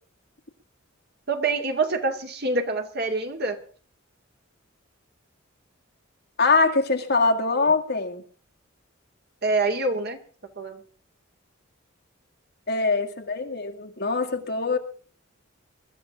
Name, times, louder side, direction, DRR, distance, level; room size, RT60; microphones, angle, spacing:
voice 1, 1.3-3.6 9.4-10.2 10.6-10.8, right 3 dB, 50° right, 5 dB, 2.3 m, -26 dB
voice 2, 6.4-8.2 12.7-14.8, left 4 dB, 55° left, 3 dB, 2.0 m, -23 dB
23.0 x 13.0 x 3.7 m, 0.41 s
head